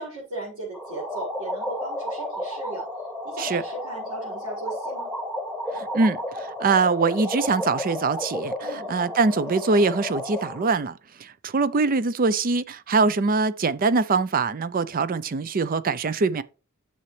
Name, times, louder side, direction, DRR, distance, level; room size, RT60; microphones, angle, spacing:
voice 1, 0.0-2.8 3.2-5.1 8.6-8.9, right 2 dB, 85° right, 5.1 m, -36 dB
sound 1, 0.7-10.7, left 1 dB, 10° right, 2.0 m, -32 dB
voice 2, 5.7-16.4, right 4 dB, 40° right, 0.5 m, -23 dB
10.0 x 6.9 x 3.3 m
head